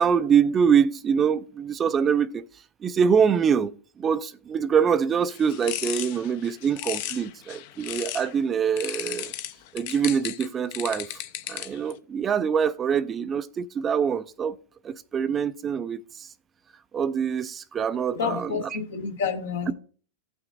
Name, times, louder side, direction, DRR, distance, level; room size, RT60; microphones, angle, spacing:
voice 1, 0.0-2.4 2.8-9.3 9.7-11.1 11.5-14.5 14.8-16.3 16.9-18.5, right 7 dB, 25° right, 0.4 m, -24 dB
sound 1, 5.3-8.3 8.8-11.9, left 13 dB, 60° left, 0.5 m, -35 dB
voice 2, 18.1-19.7, left 6 dB, 80° left, 1.3 m, -29 dB
15.5 x 5.8 x 2.6 m
hypercardioid pair, 115°, 0 cm